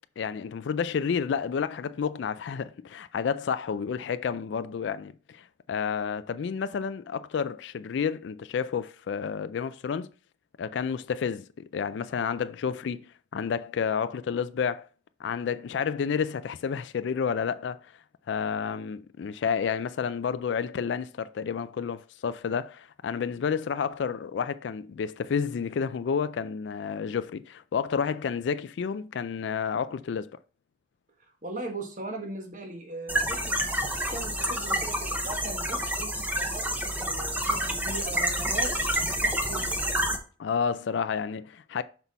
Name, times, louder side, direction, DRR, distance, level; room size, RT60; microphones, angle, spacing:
voice 1, 0.2-10.1 10.6-14.9 15.2-17.9 18.3-30.3 40.4-41.8, left 6 dB, 70° left, 0.3 m, -30 dB
voice 2, 31.4-39.8, right 2 dB, 40° right, 1.3 m, -39 dB
sound 1, 33.1-40.2, right 1 dB, 10° right, 0.8 m, -28 dB
6.0 x 5.5 x 4.0 m
head